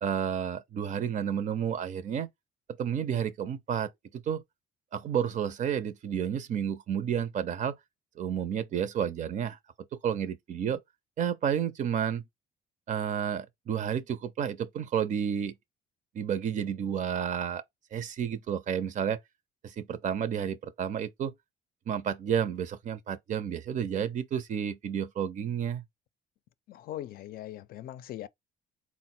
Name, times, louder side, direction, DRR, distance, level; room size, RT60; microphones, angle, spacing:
voice 1, 0.0-2.3 2.8-4.4 4.9-7.8 8.2-9.6 9.9-10.8 11.2-12.2 12.9-15.5 16.1-17.6 17.9-19.2 19.6-21.3 21.9-25.8, right 8 dB, 45° right, 0.5 m, -31 dB
voice 2, 26.7-28.3, left 13 dB, 60° left, 0.5 m, -40 dB
4.0 x 2.1 x 4.2 m
cardioid pair, 110°, 17 cm